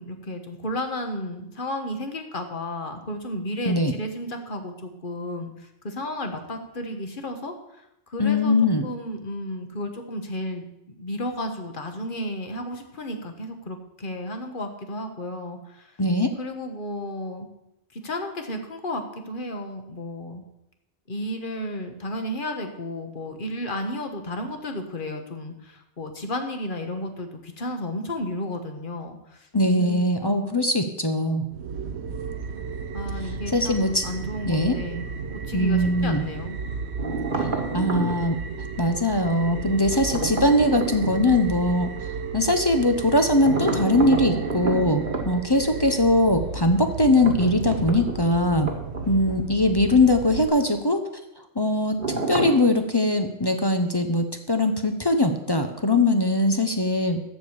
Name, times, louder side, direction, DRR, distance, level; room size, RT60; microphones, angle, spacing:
voice 1, 0.0-8.5 8.8-15.9 16.4-17.5 17.9-20.4 21.1-29.5 29.7-30.3 32.9-36.6, left 1 dB, 45° left, 5 dB, 1.4 m, -33 dB
voice 2, 8.2-8.8 16.0-16.3 29.5-31.4 33.5-34.0 34.5-34.8 35.5-36.2 37.7-38.4 38.8-41.9 42.3-48.7 49.1-51.0 51.6-52.0 52.3-57.2, left 1 dB, 25° left, 6 dB, 0.7 m, -21 dB
sound 1, 31.5-50.5, right 5 dB, 70° right, 1.1 m, -34 dB
sound 2, 37.0-38.3 39.9-41.3 43.4-45.3 47.0-49.4 49.7-49.8 52.0-52.7, right 3 dB, 45° right, 1.6 m, -29 dB
13.5 x 5.0 x 7.1 m, 0.85 s
omnidirectional pair, 1.2 m